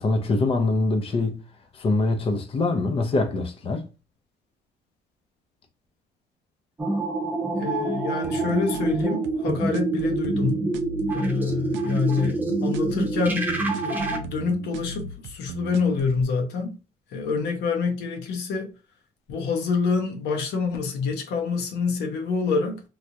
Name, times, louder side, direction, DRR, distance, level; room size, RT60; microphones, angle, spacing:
voice 1, 0.0-1.4 1.7-3.8, left 3 dB, 35° left, 0.6 m, -24 dB
sound 1, 6.8-14.2, right 2 dB, 10° right, 0.6 m, -26 dB
voice 2, 7.6-10.7 11.1-16.8 17.1-18.7 19.3-22.8, left 5 dB, 80° left, 0.8 m, -27 dB
sound 2, 8.2-16.2, right 6 dB, 90° right, 0.4 m, -37 dB
3.3 x 2.4 x 2.7 m
cardioid pair, 110°, 17 cm